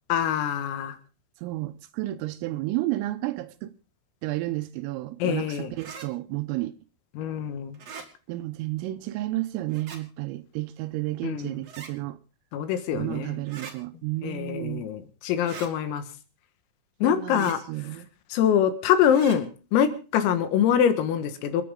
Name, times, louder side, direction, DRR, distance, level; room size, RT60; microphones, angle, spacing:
voice 1, 0.1-1.0 5.2-5.7 7.2-7.8 11.2-11.6 12.5-13.4 14.2-16.0 17.0-17.6 18.3-21.6, left 9 dB, 90° left, 4.3 m, -24 dB
voice 2, 1.4-3.7 4.2-6.7 8.3-12.2 12.9-14.9 17.0-18.1, right 17 dB, 85° right, 3.5 m, -31 dB
sound 1, 5.8-6.1 7.7-8.1 9.7-10.0 11.6-11.9 13.5-13.7 15.4-15.7 17.3-17.6 19.1-19.4, right 6 dB, 45° right, 2.5 m, -41 dB
28.5 x 9.7 x 3.8 m
omnidirectional pair, 5.9 m